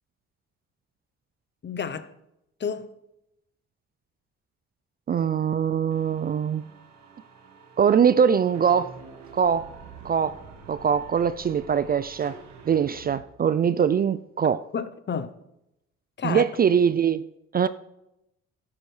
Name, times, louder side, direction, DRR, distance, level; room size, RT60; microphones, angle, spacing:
voice 1, 1.6-2.1 2.6-2.9 14.7-15.3 16.2-16.4, left 6 dB, 40° left, 0.8 m, -30 dB
voice 2, 5.1-6.6 7.8-8.9 9.3-9.7 10.0-10.4 10.7-12.4 12.7-14.6 16.2-17.2 17.5-17.7, right 7 dB, 30° right, 0.4 m, -22 dB
sound 1, 5.9-13.2, right 5 dB, 70° right, 1.7 m, -47 dB
12.5 x 9.5 x 3.3 m
supercardioid pair, 60°, 29 cm